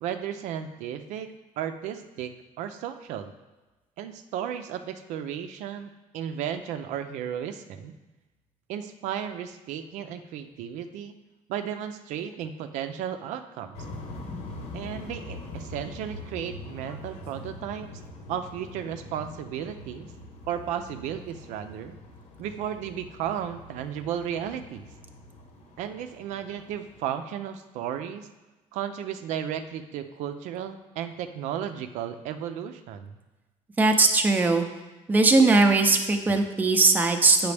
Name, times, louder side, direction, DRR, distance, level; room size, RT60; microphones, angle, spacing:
voice 1, 0.0-2.3 2.6-3.3 4.0-7.9 8.7-11.1 11.5-13.8 14.7-17.9 18.3-20.1 20.5-22.0 22.4-24.9 25.8-28.3 28.7-33.1, right 9 dB, 75° right, 8 dB, 0.5 m, -34 dB
sound 1, 13.7-27.0, left 2 dB, 60° left, 1.1 m, -43 dB
voice 2, 33.8-34.6 35.1-37.5, right 3 dB, 15° right, 5 dB, 0.6 m, -20 dB
8.2 x 6.0 x 3.4 m, 1.1 s
cardioid pair, 150°, 12 cm